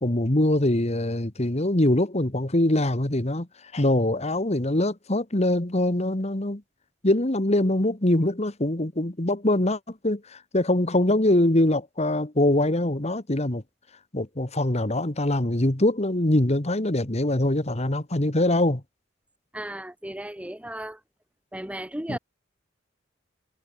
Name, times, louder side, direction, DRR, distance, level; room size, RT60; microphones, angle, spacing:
voice 1, 0.0-3.5 3.7-6.6 7.0-13.6 14.1-18.8 22.1-22.2, left 1 dB, 35° left, 1.8 m, -23 dB
voice 2, 19.5-21.0 21.5-22.2, right 1 dB, 5° right, 1.4 m, -35 dB
head